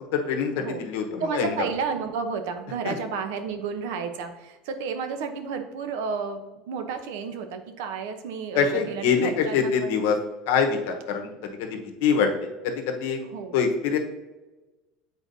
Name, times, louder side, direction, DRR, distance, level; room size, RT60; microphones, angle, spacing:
voice 1, 0.1-1.6 2.8-2.9 8.5-10.2 10.5-12.3 12.6-13.2 13.5-14.0, left 6 dB, 75° left, 4 dB, 1.0 m, -24 dB
voice 2, 1.2-6.4 6.7-10.1 13.3-13.7, right 5 dB, 75° right, 7 dB, 0.8 m, -31 dB
8.0 x 4.3 x 2.7 m, 1.1 s
cardioid pair, 165°, 0 cm